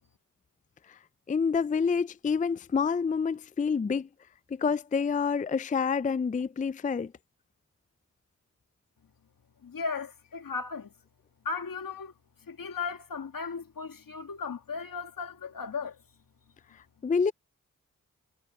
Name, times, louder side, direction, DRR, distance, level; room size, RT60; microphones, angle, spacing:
voice 1, 1.3-4.1 4.5-7.1 16.7-17.3, left 5 dB, 25° left, 0.4 m, -28 dB
voice 2, 9.6-10.9 11.4-12.1 12.5-16.0, left 5 dB, 80° left, 2.3 m, -36 dB
cardioid pair, 45°, 34 cm